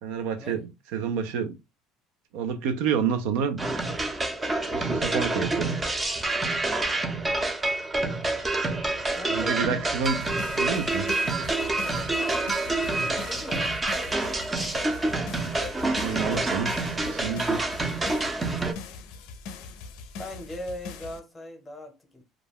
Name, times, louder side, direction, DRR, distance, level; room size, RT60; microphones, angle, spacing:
voice 1, 0.0-1.5 2.3-3.6 4.7-5.8 9.3-10.3 10.5-11.2 15.6-17.7, right 6 dB, 80° right, 0.4 m, -29 dB
sound 1, 3.6-18.7, right 2 dB, 15° right, 0.5 m, -27 dB
voice 2, 9.1-9.7 13.3-13.7 20.2-22.2, left 1 dB, 15° left, 0.8 m, -38 dB
sound 2, 10.0-21.2, left 4 dB, 80° left, 0.5 m, -42 dB
2.3 x 2.1 x 3.4 m
cardioid pair, 120°, 0 cm